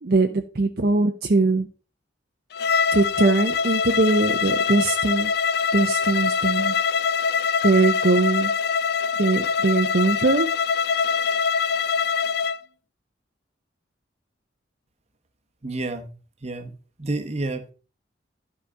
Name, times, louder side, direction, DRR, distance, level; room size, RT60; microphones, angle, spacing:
voice 1, 0.0-1.7 2.9-5.3 5.7-6.7 7.6-8.5 9.2-10.5, right 3 dB, 55° right, 5 dB, 0.7 m, -21 dB
Bowed string instrument, 2.5-12.6, left 6 dB, 55° left, 0.4 m, -23 dB
voice 2, 15.6-16.1 16.4-16.7 17.0-17.7, right 2 dB, 35° right, 7 dB, 1.2 m, -29 dB
12.5 x 5.1 x 4.9 m, 0.36 s
head